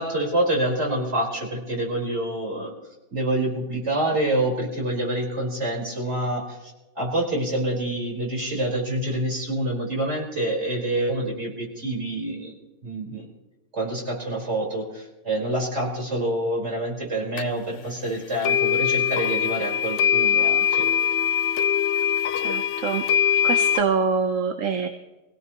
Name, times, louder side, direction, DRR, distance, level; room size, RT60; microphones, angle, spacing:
voice 1, 0.0-2.7 3.1-12.5 12.8-13.2 13.7-20.9, right 1 dB, 65° right, -2 dB, 4.9 m, -27 dB
sound 1, 17.4-17.5 18.4-23.8, left 9 dB, 75° left, 1.0 m, -22 dB
voice 2, 22.4-23.0 23.4-24.9, right 5 dB, 85° right, 6 dB, 1.3 m, -25 dB
24.0 x 17.0 x 3.0 m, 1.1 s
omnidirectional pair, 1.3 m